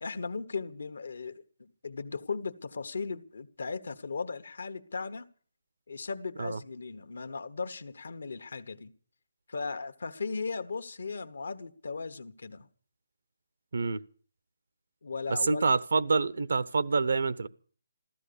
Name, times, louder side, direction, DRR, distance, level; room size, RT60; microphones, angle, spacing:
voice 1, 0.0-5.3 5.9-8.9 9.5-12.7 15.0-15.7, left 4 dB, 75° left, 1.3 m, -37 dB
voice 2, 15.3-17.5, right 4 dB, 75° right, 0.8 m, -27 dB
15.0 x 13.0 x 6.8 m
hypercardioid pair, 165°, 0 cm